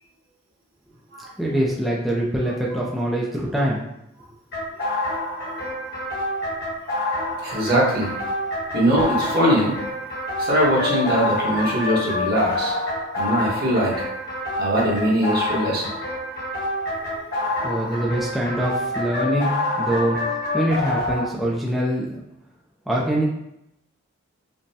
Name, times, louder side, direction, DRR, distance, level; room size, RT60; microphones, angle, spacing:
voice 1, 1.4-3.8 17.6-22.1 22.9-23.2, right 1 dB, ahead, -6 dB, 0.4 m, -24 dB
sound 1, 4.5-21.2, left 1 dB, 50° left, 1.3 m, -27 dB
voice 2, 7.4-8.1 8.7-9.7 10.4-12.7 13.1-14.0 14.6-15.9 17.1-17.5, equal, 50° right, -4 dB, 1.2 m, -21 dB
5.1 x 2.2 x 2.7 m, 0.81 s
head